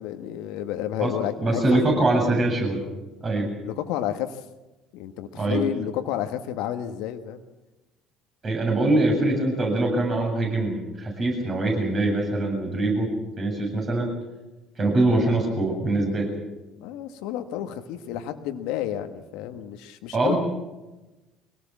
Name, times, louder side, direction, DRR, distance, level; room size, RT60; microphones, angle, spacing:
voice 1, 0.0-1.8 3.6-4.4 4.9-7.4 16.8-20.3, left 11 dB, 70° left, 7 dB, 1.4 m, -30 dB
voice 2, 1.4-2.8 3.2-3.5 5.3-5.6 8.4-13.1 13.4-14.1 14.8-16.3 20.1-20.4, right 2 dB, 40° right, 2 dB, 7.7 m, -23 dB
24.5 x 18.0 x 7.4 m, 1.1 s
hypercardioid pair, 60°, 0 cm